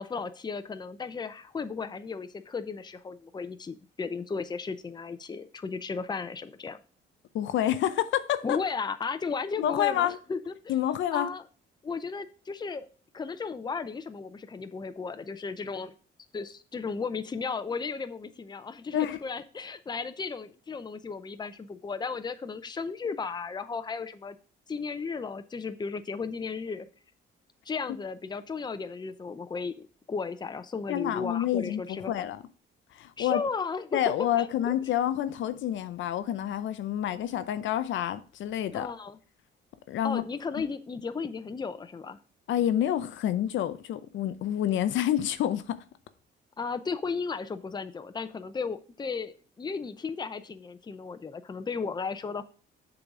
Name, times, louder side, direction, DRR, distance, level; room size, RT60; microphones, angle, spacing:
voice 1, 0.0-6.8 8.4-10.7 11.1-11.4 11.8-12.9 13.1-15.9 16.3-24.4 24.7-26.9 27.7-32.1 33.2-34.7 38.7-39.2 40.0-42.2 46.6-52.4, left 5 dB, 20° left, 0.6 m, -35 dB
voice 2, 7.3-8.6 9.6-10.2 10.7-11.3 18.9-19.2 30.9-32.4 32.9-33.4 33.9-38.9 39.9-40.2 42.5-45.8, left 11 dB, 75° left, 0.6 m, -28 dB
6.8 x 4.0 x 4.8 m
cardioid pair, 90°, 20 cm